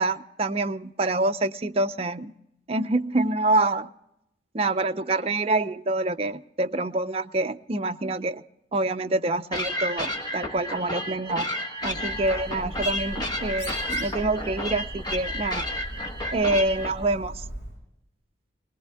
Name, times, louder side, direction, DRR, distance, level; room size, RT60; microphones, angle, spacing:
voice 1, 0.0-2.3 2.7-3.9 4.5-8.4 8.7-11.5 11.8-15.7 16.3-17.4, right 2 dB, 35° right, 7 dB, 0.5 m, -26 dB
sound 1, 9.5-16.9, left 1 dB, 25° left, 1.5 m, -32 dB
Bird, 11.8-17.8, equal, 70° left, 7.7 m, -38 dB
20.5 x 20.0 x 3.4 m, 0.83 s
head